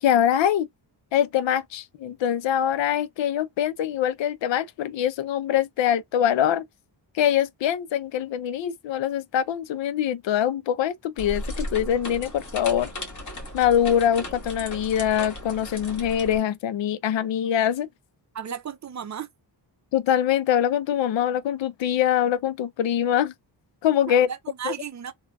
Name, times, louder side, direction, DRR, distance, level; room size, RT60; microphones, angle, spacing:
voice 1, 0.0-0.7 1.1-6.7 7.1-12.9 13.5-17.9 19.9-23.3 23.8-24.3 24.7-24.8, left 10 dB, 80° left, 0.6 m, -23 dB
sound 1, 11.2-16.4, left 1 dB, 40° left, 1.5 m, -36 dB
voice 2, 18.3-19.3 24.1-25.1, right 8 dB, 40° right, 0.5 m, -34 dB
3.7 x 2.2 x 2.3 m
wide cardioid pair, 135°, 44 cm